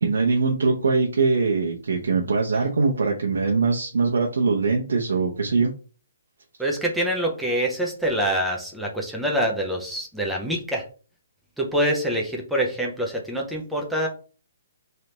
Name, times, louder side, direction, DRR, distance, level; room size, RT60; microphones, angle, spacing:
voice 1, 0.0-5.7, right 4 dB, 90° right, 0 dB, 0.8 m, -22 dB
voice 2, 6.6-10.9 11.6-14.1, right 1 dB, ahead, -1 dB, 0.6 m, -25 dB
3.3 x 2.9 x 3.9 m, 0.37 s
hypercardioid pair, 175°, 0 cm